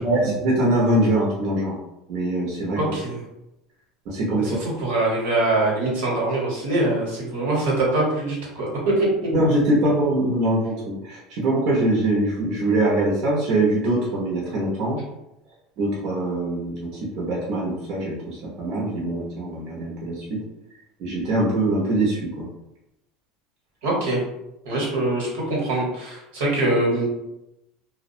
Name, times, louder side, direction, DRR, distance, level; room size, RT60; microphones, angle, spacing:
voice 1, 0.0-1.8 2.1-2.8 4.1-4.6 9.3-15.0 15.8-20.4 21.0-22.5, right 1 dB, 60° right, -5 dB, 0.7 m, -23 dB
voice 2, 2.8-3.2 4.4-9.1 23.8-24.2 24.6-27.1, right 2 dB, 85° right, -4 dB, 1.0 m, -23 dB
2.3 x 2.1 x 2.6 m, 0.89 s
supercardioid pair, 105°, 0 cm